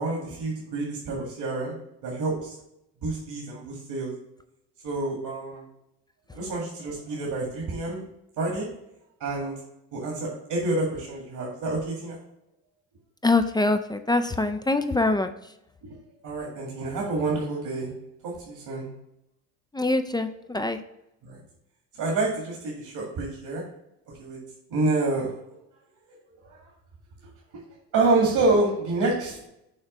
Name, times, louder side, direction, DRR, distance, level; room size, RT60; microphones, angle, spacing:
voice 1, 0.0-1.7 2.0-2.6 3.0-4.1 4.8-5.6 6.3-8.0 8.4-8.7 9.2-9.6 9.9-12.2 16.2-17.9 18.2-18.9 21.2-21.4 22.0-23.6 24.2-24.4 24.7-25.3 27.9-29.4, right 2 dB, 65° right, -2 dB, 2.1 m, -27 dB
voice 2, 13.2-15.3 19.7-20.8, left 2 dB, 10° left, 8 dB, 0.4 m, -24 dB
6.5 x 3.4 x 5.0 m, 0.83 s
supercardioid pair, 80°, 39 cm